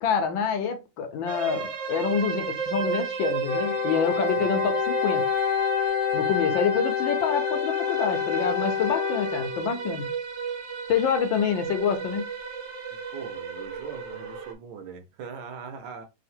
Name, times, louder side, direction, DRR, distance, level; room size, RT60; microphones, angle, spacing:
voice 1, 0.0-5.2 6.1-10.1 10.9-12.2, left 6 dB, 70° left, 1.4 m, -27 dB
sound 1, 1.3-14.5, right 5 dB, 60° right, 1.6 m, -33 dB
Wind instrument woodwind instrument, 3.4-9.8, left 8 dB, 50° left, 0.9 m, -27 dB
voice 2, 4.4-4.7 13.1-16.0, right 6 dB, 75° right, 1.6 m, -41 dB
3.6 x 2.9 x 4.2 m
omnidirectional pair, 2.4 m